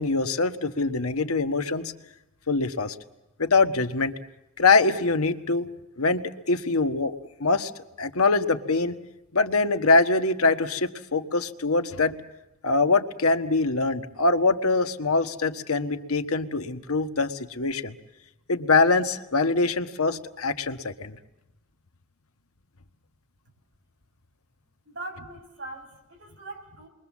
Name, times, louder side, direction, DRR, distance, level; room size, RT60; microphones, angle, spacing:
voice 1, 0.0-1.9 2.5-2.9 3.4-4.1 4.6-5.7 6.0-7.7 8.0-9.0 9.3-12.1 12.6-18.0 18.5-21.2, left 3 dB, 90° left, 8 dB, 1.4 m, -23 dB
voice 2, 24.8-26.9, right 2 dB, 55° right, 1 dB, 6.0 m, -41 dB
28.5 x 22.5 x 7.3 m, 0.94 s
head